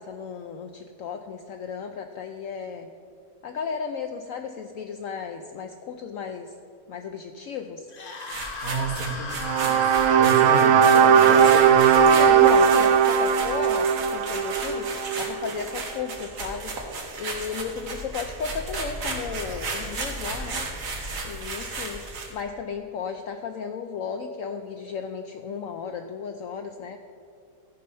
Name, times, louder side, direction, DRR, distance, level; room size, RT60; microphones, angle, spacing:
voice 1, 0.0-2.9 3.4-6.5 6.9-7.9 12.1-16.8 17.2-20.7 21.2-22.0 22.3-27.0, left 6 dB, 70° left, 5 dB, 0.8 m, -34 dB
sound 1, 7.9-12.5, left 4 dB, 45° left, 1.2 m, -35 dB
sound 2, 8.2-22.4, right 3 dB, 85° right, 1.9 m, -34 dB
voice 2, 8.6-12.2, right 3 dB, 40° right, 1 dB, 1.2 m, -31 dB
sound 3, 9.4-15.6, right 7 dB, 70° right, 0.8 m, -18 dB
13.5 x 5.4 x 5.4 m, 2.4 s
omnidirectional pair, 1.7 m